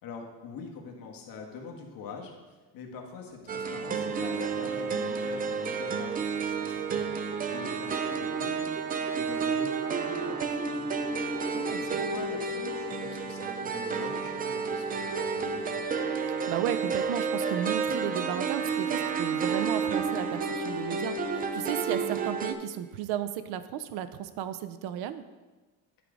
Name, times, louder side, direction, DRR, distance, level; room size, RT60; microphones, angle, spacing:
voice 1, 0.0-8.8 9.1-11.4 11.8-15.8, left 5 dB, 60° left, 1 dB, 1.5 m, -44 dB
sound 1, 3.5-22.5, right 5 dB, 25° right, 0.4 m, -31 dB
voice 2, 11.5-12.1 16.3-25.2, right 10 dB, 75° right, 12 dB, 0.6 m, -34 dB
11.0 x 4.9 x 3.9 m, 1.2 s
cardioid pair, 145°, 38 cm